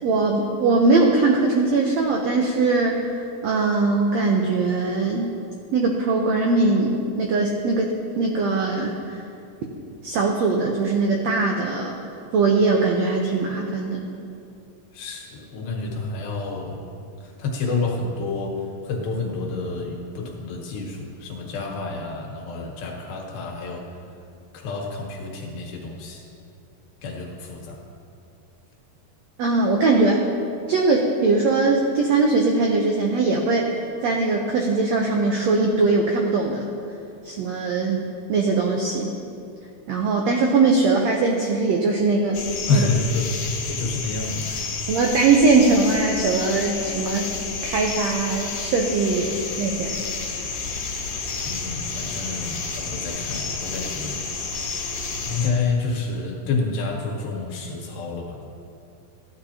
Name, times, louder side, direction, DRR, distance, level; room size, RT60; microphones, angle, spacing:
voice 1, 0.0-3.0 3.4-5.3 5.7-9.2 10.0-12.0 12.3-14.0 29.4-30.2 30.7-33.7 34.0-36.7 37.2-39.1 39.9-42.4 42.7-42.9 44.9-47.3 47.6-50.0, right 3 dB, 85° right, 0 dB, 1.5 m, -21 dB
voice 2, 14.9-16.8 17.2-23.9 24.5-26.3 27.0-27.8 42.7-44.7 51.5-54.3 55.3-58.5, left 3 dB, 85° left, 0 dB, 3.1 m, -28 dB
sound 1, 42.3-55.5, left 4 dB, 65° left, 2.7 m, -30 dB
15.0 x 10.5 x 2.8 m, 2.5 s
omnidirectional pair, 4.1 m